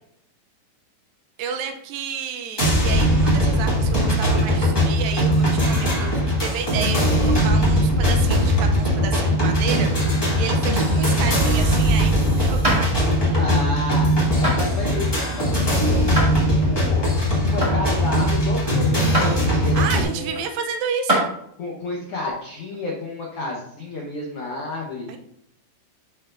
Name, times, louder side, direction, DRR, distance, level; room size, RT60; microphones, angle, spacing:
voice 1, 1.4-6.1 6.4-13.1 19.5-21.3 25.1-25.2, right 6 dB, 80° right, 6 dB, 2.3 m, -31 dB
sound 1, 2.6-20.0, equal, 10° left, 1.2 m, -20 dB
sound 2, 12.6-12.9 14.4-14.6 16.1-16.3 17.6-17.8 19.1-19.3 20.3-20.4 21.1-21.3 22.7-22.8, right 1 dB, 15° right, 1.5 m, -21 dB
voice 2, 13.4-17.1 17.4-20.4 21.6-25.1, left 2 dB, 85° left, -2 dB, 1.2 m, -31 dB
11.0 x 4.6 x 2.5 m, 0.72 s
omnidirectional pair, 4.2 m